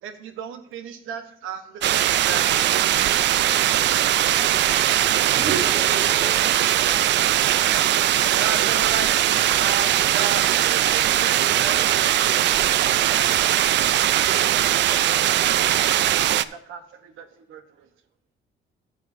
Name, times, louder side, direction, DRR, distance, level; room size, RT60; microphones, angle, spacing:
voice 1, 0.0-2.7 8.3-9.1 9.6-13.9 14.2-17.9, right 7 dB, 90° right, 9 dB, 1.1 m, -35 dB
sound 1, 1.8-16.5, right 12 dB, 65° right, 0.4 m, -20 dB
voice 2, 4.0-4.9 5.2-7.2, equal, 10° right, 0 dB, 1.5 m, -43 dB
sound 2, 5.2-7.0 7.3-9.5, right 6 dB, 45° right, 0.9 m, -34 dB
14.0 x 7.5 x 2.6 m, 0.68 s
cardioid pair, 90°, 20 cm